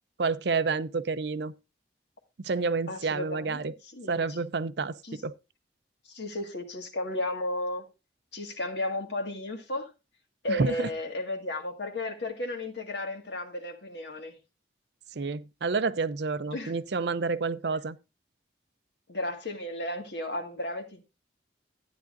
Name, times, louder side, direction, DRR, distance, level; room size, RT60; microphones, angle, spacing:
voice 1, 0.2-1.5 2.4-3.7 4.1-5.3 10.5-10.9 15.2-18.0, right 4 dB, 65° right, 0.5 m, -29 dB
voice 2, 2.9-4.4 5.0-5.2 6.1-7.9 8.3-9.9 10.4-14.4 16.5-16.7 19.1-21.0, left 1 dB, 65° left, 1.9 m, -34 dB
13.0 x 9.4 x 2.6 m
head